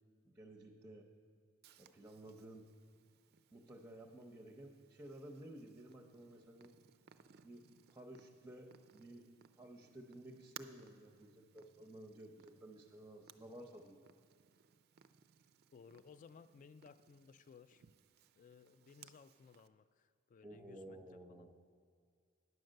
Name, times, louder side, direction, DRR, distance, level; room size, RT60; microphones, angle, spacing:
voice 1, 0.2-1.1 1.8-2.7 3.5-6.8 7.4-7.6 7.9-9.3 9.5-14.0 20.4-21.5, right 1 dB, 10° right, 1 dB, 0.7 m, -54 dB
Purr, 1.6-19.7, right 9 dB, 50° right, 0.4 m, -64 dB
voice 2, 15.7-17.8 18.4-21.5, left 5 dB, 35° left, 14 dB, 0.3 m, -60 dB
9.6 x 7.8 x 6.4 m, 2.2 s
head